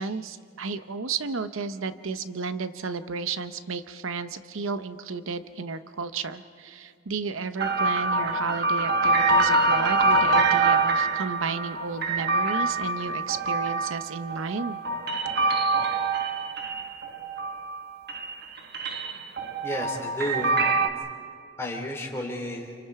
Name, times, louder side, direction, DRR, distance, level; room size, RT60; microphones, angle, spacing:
voice 1, 0.0-14.8, right 4 dB, 75° right, 11 dB, 0.8 m, -33 dB
sound 1, 7.6-17.8 18.1-20.9, right 3 dB, 50° right, 1.3 m, -25 dB
voice 2, 19.6-20.6 21.6-22.8, left 1 dB, 15° left, 1 dB, 2.9 m, -32 dB
29.5 x 28.0 x 4.7 m, 2.2 s
head